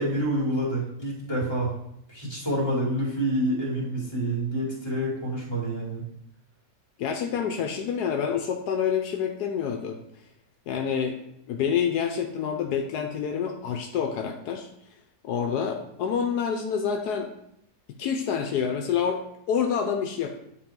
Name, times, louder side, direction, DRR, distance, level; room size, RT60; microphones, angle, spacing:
voice 1, 0.0-1.7 2.1-6.0, right 1 dB, 15° left, -5 dB, 2.5 m, -27 dB
voice 2, 7.0-10.0 10.7-11.2 11.5-14.7 15.2-17.3 18.0-20.4, left 7 dB, 80° left, 5 dB, 1.2 m, -27 dB
9.9 x 4.2 x 3.7 m, 0.75 s
omnidirectional pair, 1.7 m